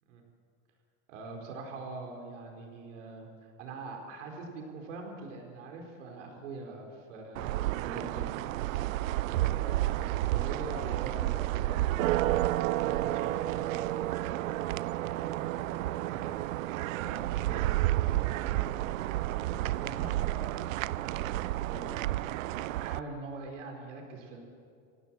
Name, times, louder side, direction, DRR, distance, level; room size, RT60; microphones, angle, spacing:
voice 1, 1.1-14.5 15.1-20.5 21.0-22.1 22.5-24.4, right 3 dB, 70° right, 2 dB, 4.7 m, -44 dB
sound 1, 7.4-23.0, right 15 dB, 90° right, 0.6 m, -31 dB
25.5 x 16.5 x 7.6 m, 2.4 s
supercardioid pair, 165°, 38 cm